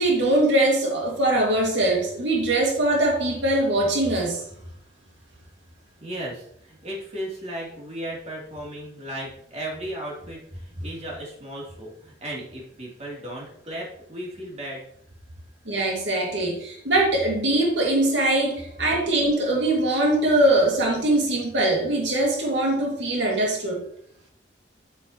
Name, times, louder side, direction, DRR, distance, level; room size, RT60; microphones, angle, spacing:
voice 1, 0.0-4.4 15.7-23.8, right 1 dB, 85° right, -1 dB, 2.2 m, -22 dB
voice 2, 6.0-14.8, right 1 dB, 40° right, -3 dB, 3.0 m, -35 dB
9.6 x 8.7 x 3.0 m, 0.69 s
head